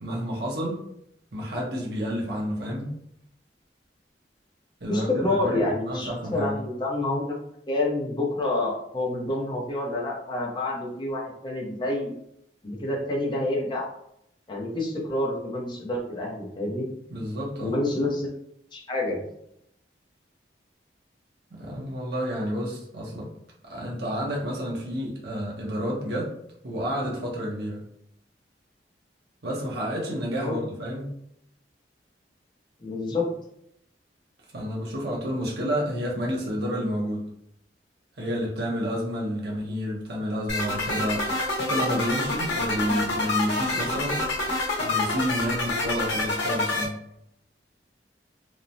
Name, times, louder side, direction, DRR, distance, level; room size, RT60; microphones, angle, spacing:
voice 1, 0.0-0.8 1.3-2.9 4.8-5.1 5.4-6.5 17.1-17.8 21.5-23.3 23.6-26.3 26.6-27.8 29.4-31.1 34.5-37.3 38.2-44.2 44.8-47.0, equal, 60° right, -2 dB, 0.7 m, -30 dB
voice 2, 4.9-7.4 7.7-12.1 12.6-13.9 14.5-16.9 17.6-18.3 18.7-19.2 30.4-30.6 32.8-33.3, left 2 dB, 25° left, -2 dB, 0.6 m, -28 dB
sound 1, 40.5-46.8, left 2 dB, 80° left, 0.8 m, -27 dB
3.0 x 2.0 x 2.6 m, 0.74 s
head